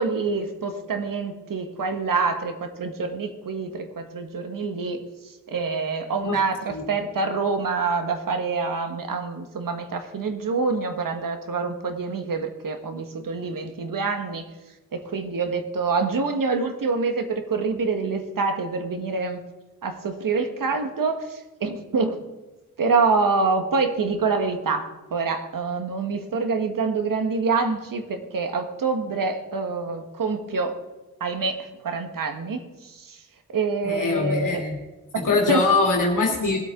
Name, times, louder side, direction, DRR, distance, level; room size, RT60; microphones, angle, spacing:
voice 1, 0.0-14.5 14.9-19.4 19.8-22.2 22.8-30.8 31.2-33.2 33.5-34.6 35.1-35.6, right 4 dB, 75° right, 6 dB, 1.6 m, -26 dB
voice 2, 33.8-34.8 35.2-36.6, left 3 dB, 65° left, -1 dB, 2.3 m, -22 dB
19.5 x 8.3 x 3.8 m, 1.1 s
wide cardioid pair, 85°, 33 cm